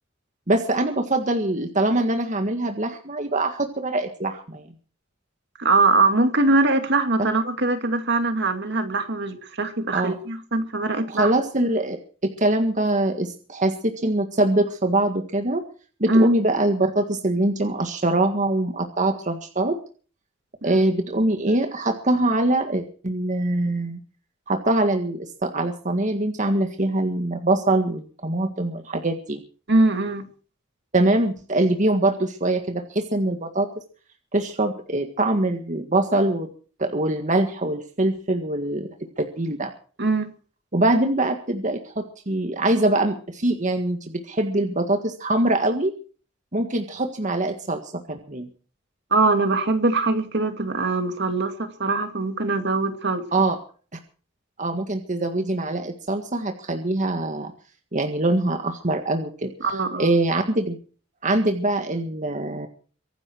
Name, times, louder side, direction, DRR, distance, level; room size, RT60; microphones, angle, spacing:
voice 1, 0.5-4.6 9.9-10.2 11.1-15.6 16.0-19.8 20.6-24.0 24.5-29.4 30.9-33.7 34.3-36.5 36.8-38.9 39.2-39.7 40.7-45.9 46.5-48.5 53.3-53.6 54.6-57.5 57.9-60.8 61.2-62.7, right 2 dB, 40° right, 5 dB, 1.8 m, -23 dB
voice 2, 5.6-11.3 16.1-16.3 20.6-20.8 29.7-30.3 40.0-40.3 49.1-53.2 59.6-60.2, right 2 dB, 60° right, 7 dB, 2.5 m, -22 dB
24.0 x 11.5 x 4.6 m, 0.41 s
head